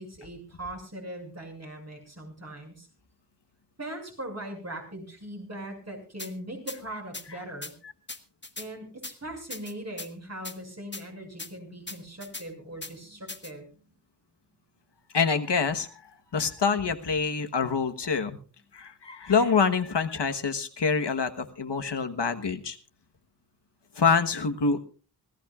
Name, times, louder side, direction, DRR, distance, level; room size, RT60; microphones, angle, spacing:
voice 1, 0.0-2.9 3.8-7.7 8.6-13.7, right 1 dB, 40° right, 2 dB, 6.5 m, -40 dB
sound 1, 6.2-6.3 6.7-6.8 7.1-7.2 7.6-7.7 8.1-8.7 9.0-9.1 9.5-10.1 10.4-10.6 10.9-11.0 11.4-11.5 11.9-12.4 12.8-12.9 13.3-13.5, left 3 dB, 25° left, 1.4 m, -38 dB
voice 2, 15.1-15.9 16.3-18.4 18.7-22.8 24.0-24.8, left 5 dB, 85° left, 7 dB, 1.3 m, -26 dB
26.0 x 15.5 x 2.4 m, 0.35 s
wide cardioid pair, 75°, 40 cm